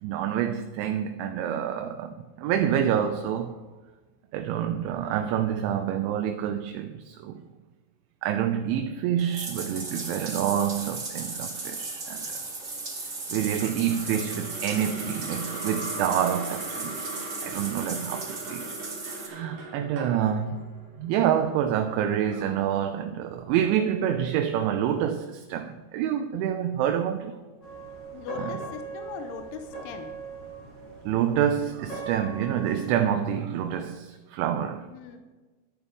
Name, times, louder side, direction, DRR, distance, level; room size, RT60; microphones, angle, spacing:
voice 1, 0.0-3.6 4.3-7.4 8.2-12.4 13.3-18.8 19.0-20.7 21.0-27.4 28.4-28.6 31.1-34.9, right 9 dB, 80° right, 2.9 m, -27 dB
Bathtub (filling or washing), 9.2-19.3, right 3 dB, 35° right, 1.6 m, -36 dB
sound 1, 13.6-21.8, right 2 dB, 55° right, 2.5 m, -40 dB
sound 2, 27.6-32.8, right 4 dB, 30° left, 2.2 m, -40 dB
voice 2, 28.1-30.1 34.9-35.2, left 8 dB, 80° left, 3.4 m, -39 dB
13.0 x 11.0 x 5.3 m
omnidirectional pair, 5.7 m